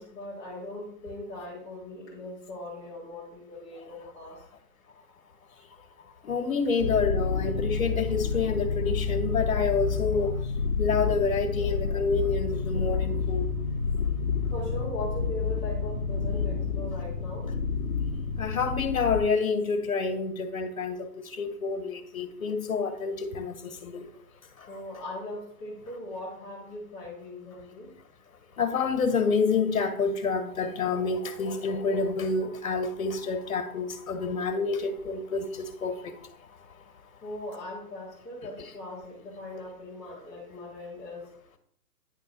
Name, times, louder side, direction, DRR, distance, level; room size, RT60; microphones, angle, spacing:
voice 1, 0.0-4.4 14.5-17.5 24.7-27.9 37.2-41.3, left 1 dB, 5° left, -8 dB, 1.1 m, -39 dB
voice 2, 6.2-10.4 10.8-13.4 18.4-24.1 24.6-24.7 28.6-36.8, left 4 dB, 60° left, 7 dB, 1.5 m, -28 dB
sound 1, 6.8-19.2, left 5 dB, 25° left, 0.8 m, -29 dB
9.8 x 3.8 x 5.2 m, 0.67 s
hypercardioid pair, 170°, 47 cm